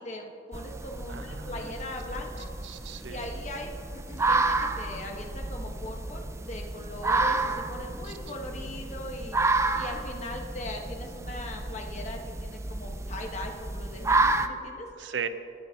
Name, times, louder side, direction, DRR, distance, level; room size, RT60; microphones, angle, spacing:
voice 1, 0.0-2.5 3.0-14.9, left 1 dB, 40° left, 2 dB, 1.3 m, -40 dB
sound 1, 0.5-14.5, right 3 dB, 15° right, 0.4 m, -30 dB
voice 2, 1.1-1.7 2.6-3.3 8.0-8.1 15.0-15.3, right 6 dB, 80° right, 10 dB, 0.7 m, -37 dB
23.5 x 9.5 x 2.9 m, 2.9 s
head